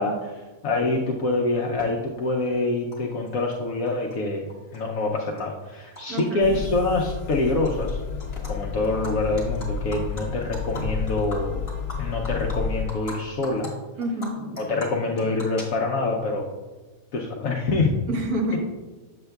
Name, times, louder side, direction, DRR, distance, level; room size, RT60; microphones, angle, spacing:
voice 1, 0.0-4.4 4.7-8.0 8.5-11.7 12.0-13.7 14.7-16.5 17.1-17.9, left 2 dB, 70° left, -1 dB, 1.0 m, -25 dB
Animal, 1.8-1.9 2.9-3.0 3.3-4.2 4.5-6.2 6.6-6.8 7.1-7.9 8.2-8.5 8.8-13.2 13.4-13.7 14.0-16.1, left 1 dB, 20° left, 1.6 m, -40 dB
voice 2, 6.1-6.6 14.0-14.5 18.1-18.6, equal, 85° right, 2 dB, 1.5 m, -28 dB
sound 1, 6.4-12.8, left 5 dB, 90° left, 1.2 m, -31 dB
7.7 x 7.1 x 2.3 m, 1.3 s
omnidirectional pair, 1.5 m